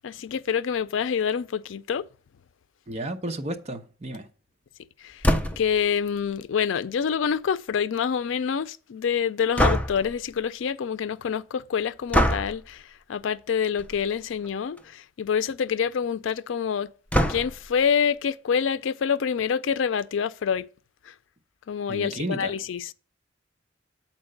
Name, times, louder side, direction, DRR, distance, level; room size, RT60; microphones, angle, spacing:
voice 1, 0.0-2.1 5.0-16.9 17.3-20.7 21.0-21.1 21.7-22.9, left 7 dB, 90° left, 0.4 m, -27 dB
voice 2, 2.9-4.3 21.9-22.5, right 1 dB, 35° right, 0.8 m, -32 dB
sound 1, 5.2-5.8 9.6-10.2 12.1-12.6 13.8-14.0 14.4-14.5 14.8-14.9 17.1-17.7, equal, 5° left, 0.5 m, -23 dB
7.8 x 4.4 x 6.5 m
head